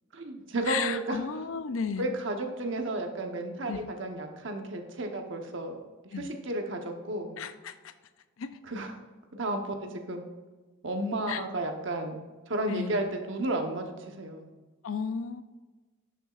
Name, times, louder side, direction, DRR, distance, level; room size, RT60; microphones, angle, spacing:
voice 1, 0.1-1.2 2.0-5.8 6.2-7.4 8.7-8.9 9.3-10.2 10.8-12.2 12.5-14.5, right 2 dB, 60° right, 4 dB, 1.0 m, -32 dB
voice 2, 0.6-2.1 3.7-3.9 6.1-6.3 7.4-7.9 8.4-8.6 11.3-11.4 12.7-13.1 14.8-15.4, left 6 dB, 75° left, 11 dB, 0.5 m, -34 dB
11.0 x 6.8 x 2.4 m, 1.3 s
head